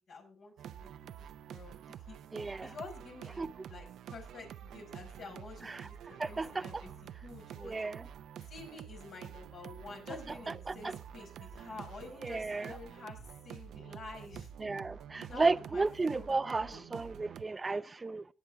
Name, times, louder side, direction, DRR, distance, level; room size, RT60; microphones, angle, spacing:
voice 1, 0.0-2.2 2.6-3.4 3.7-7.8 8.5-14.5 15.3-16.9, left 3 dB, 70° left, 5.3 m, -49 dB
sound 1, 0.6-17.4, right 9 dB, 85° right, 0.6 m, -48 dB
voice 2, 2.3-2.7 3.4-3.5 5.6-5.9 6.2-6.6 7.6-8.0 10.7-10.9 12.2-12.7 14.6-18.2, right 3 dB, 30° right, 0.5 m, -33 dB
18.5 x 8.5 x 3.6 m
cardioid pair, 85°, 0 cm